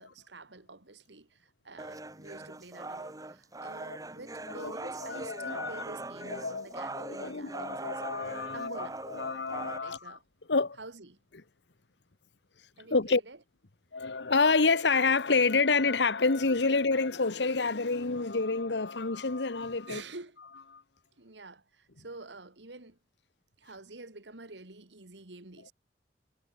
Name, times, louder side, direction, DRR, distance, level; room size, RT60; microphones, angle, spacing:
voice 1, 0.0-8.1 8.5-9.0 9.8-10.2 10.8-11.2 12.8-13.4 19.9-20.4 21.2-23.0 23.6-25.7, right 3 dB, 85° right, 2.4 m, -48 dB
sound 1, 1.8-9.8, right 2 dB, 20° right, 1.9 m, -41 dB
voice 2, 5.0-5.8 6.3-6.7 7.0-10.2 10.5-10.8 12.9-13.2 13.9-20.0 20.7-20.8, left 4 dB, 80° left, 1.2 m, -28 dB
head